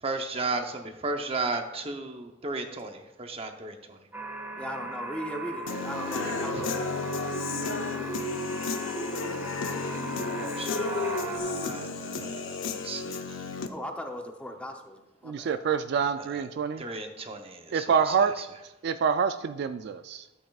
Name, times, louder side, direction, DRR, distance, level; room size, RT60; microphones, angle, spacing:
voice 1, 0.0-4.1 6.2-6.8 10.4-13.4 16.2-16.4 16.8-18.5, right 3 dB, 30° right, 5 dB, 0.8 m, -35 dB
sound 1, 4.1-11.4, right 2 dB, 10° right, 1.0 m, -37 dB
voice 2, 4.6-6.7 8.0-8.2 13.7-15.6, left 1 dB, 5° left, 4 dB, 0.7 m, -38 dB
Human voice / Guitar, 5.7-13.7, left 4 dB, 85° left, 0.6 m, -33 dB
voice 3, 15.2-16.8 17.7-18.3 18.8-20.3, right 6 dB, 55° right, 10 dB, 0.3 m, -26 dB
12.0 x 7.8 x 2.4 m, 1.0 s
head